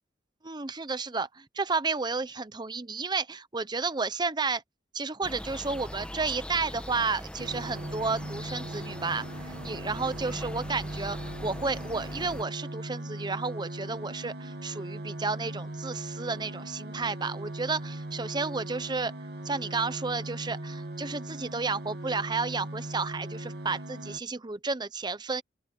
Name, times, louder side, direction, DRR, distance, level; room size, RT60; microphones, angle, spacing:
voice 1, 0.4-4.6 4.9-19.1 19.4-25.4, right 4 dB, 25° right, 0.8 m, -32 dB
sound 1, 5.2-12.4, equal, 5° left, 1.3 m, -41 dB
sound 2, 7.4-24.2, right 1 dB, 65° right, 2.5 m, -39 dB
open air
head